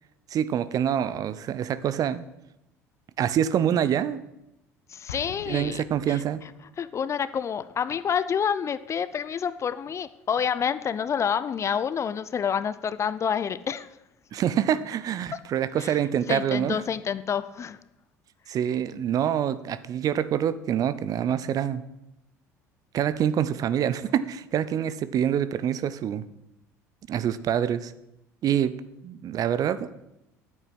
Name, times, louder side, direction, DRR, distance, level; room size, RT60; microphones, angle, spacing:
voice 1, 0.3-2.2 3.2-4.2 5.5-6.4 14.3-16.8 18.5-21.8 22.9-26.3 27.1-27.9 28.4-28.7 29.0-29.9, right 9 dB, 45° right, 15 dB, 0.8 m, -26 dB
voice 2, 4.9-6.2 6.8-14.0 15.3-15.4 15.8-16.0 16.3-17.8, left 7 dB, 35° left, 16 dB, 0.7 m, -28 dB
Explosion, 5.1-6.8, left 5 dB, 75° left, 1.1 m, -44 dB
9.9 x 9.2 x 7.7 m, 0.86 s
figure-of-eight pair, 65°, 9 cm